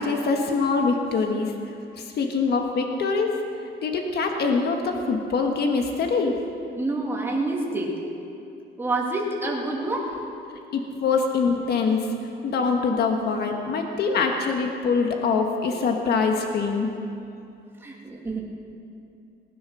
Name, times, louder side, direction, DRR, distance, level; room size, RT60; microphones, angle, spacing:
voice 1, 0.0-1.5 2.0-3.4 3.8-6.3 10.7-12.1 12.4-16.9, left 4 dB, 55° left, 3 dB, 1.5 m, -24 dB
voice 2, 6.8-7.9 8.8-10.2 17.8-18.4, right 2 dB, 10° right, -2 dB, 2.4 m, -27 dB
19.5 x 10.0 x 6.3 m, 2.7 s
cardioid pair, 155°, 19 cm